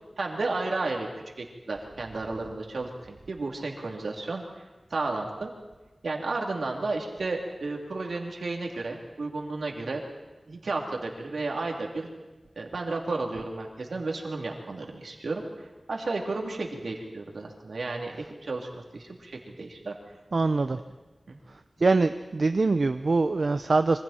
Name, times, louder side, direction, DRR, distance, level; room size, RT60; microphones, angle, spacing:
voice 1, 0.2-1.1 1.4-4.6 4.9-5.5 6.0-10.0 10.5-12.1 12.5-18.2 18.4-19.9 20.7-20.8 21.3-21.4, right 3 dB, 90° right, 0 dB, 3.2 m, -33 dB
voice 2, 20.3-20.8 21.8-24.0, right 3 dB, 70° right, 9 dB, 0.7 m, -23 dB
27.0 x 25.0 x 4.5 m, 1.1 s
wide cardioid pair, 50°, 0 cm